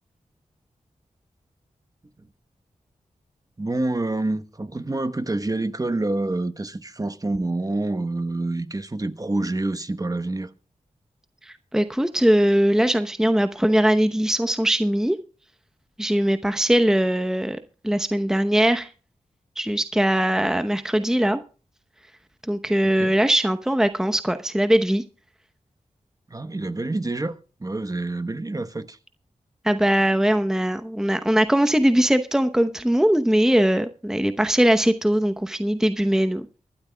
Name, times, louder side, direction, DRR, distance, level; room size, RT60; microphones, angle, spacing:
voice 1, 3.6-10.5 22.8-23.1 26.3-27.3 27.6-29.0, right 2 dB, 25° right, 1.0 m, -27 dB
voice 2, 11.4-15.2 16.0-18.9 19.6-21.4 22.5-25.0 29.6-36.4, right 1 dB, 5° right, 0.8 m, -21 dB
24.0 x 12.5 x 2.3 m
cardioid pair, 60°, 13 cm